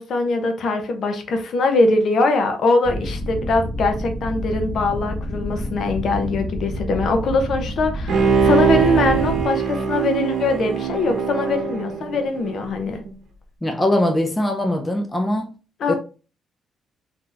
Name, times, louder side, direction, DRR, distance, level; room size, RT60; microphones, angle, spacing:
voice 1, 0.0-13.0 15.8-15.9, left 3 dB, 55° left, 0.7 m, -22 dB
sound 1, 2.8-9.5, equal, 20° right, 1.1 m, -29 dB
Bowed string instrument, 8.1-12.7 13.1-13.2, right 6 dB, 65° right, 0.8 m, -21 dB
voice 2, 13.6-15.5 15.9-16.0, left 1 dB, 15° left, 0.4 m, -21 dB
3.9 x 2.8 x 2.4 m
cardioid pair, 145°, 0 cm